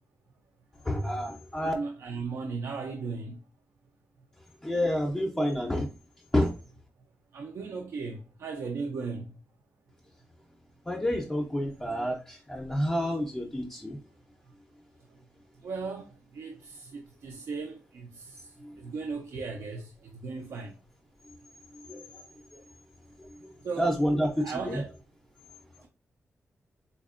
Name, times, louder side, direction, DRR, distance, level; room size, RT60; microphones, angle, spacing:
voice 1, 0.8-1.7 4.6-5.9 6.3-6.5 10.9-14.0 21.9-22.2 23.8-24.8, equal, 10° left, 0.5 m, -29 dB
voice 2, 1.7-3.4 7.3-9.3 15.6-16.1 16.3-18.4 18.8-19.9 20.2-20.7 23.6-23.9 24.4-24.9, right 4 dB, 70° right, 0.4 m, -36 dB
4.1 x 2.8 x 2.4 m
wide cardioid pair, 170°, 5 cm